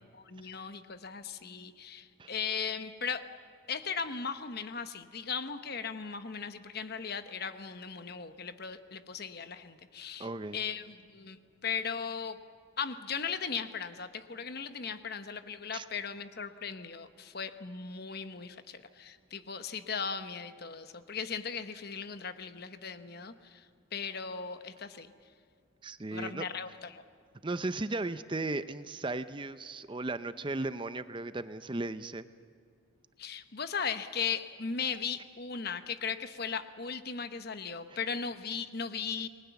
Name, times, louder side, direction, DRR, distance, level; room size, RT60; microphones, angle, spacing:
voice 1, 0.1-3.3 3.7-10.3 10.5-12.4 12.8-23.6 23.9-25.1 26.1-27.0 33.2-39.3, left 6 dB, 50° left, 10 dB, 1.1 m, -37 dB
voice 2, 10.2-10.6 15.7-15.9 25.8-26.5 27.4-32.3 37.9-38.0, right 2 dB, 25° right, 12 dB, 0.6 m, -36 dB
28.5 x 20.5 x 7.1 m, 2.2 s
head